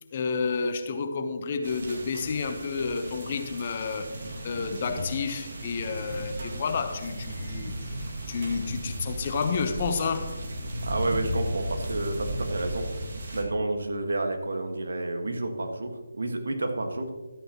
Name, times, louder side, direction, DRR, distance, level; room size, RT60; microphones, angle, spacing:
voice 1, 0.1-10.4, left 5 dB, 35° left, 0.9 m, -30 dB
sound 1, 1.6-13.4, right 1 dB, 50° right, 2.1 m, -35 dB
voice 2, 10.8-12.9 13.3-17.1, right 2 dB, 65° right, 1.6 m, -30 dB
13.0 x 8.9 x 3.0 m
figure-of-eight pair, 155°, 0 cm